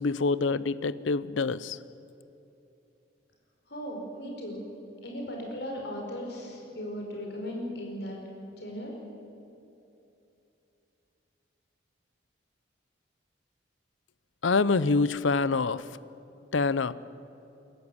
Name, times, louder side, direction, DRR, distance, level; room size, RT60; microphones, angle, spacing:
voice 1, 0.0-1.8 14.4-15.9 16.5-16.9, left 4 dB, 80° left, 18 dB, 0.6 m, -26 dB
voice 2, 3.7-4.7 5.0-8.2 8.6-8.9, equal, 55° left, 0 dB, 4.9 m, -37 dB
22.5 x 13.5 x 9.8 m, 2.8 s
head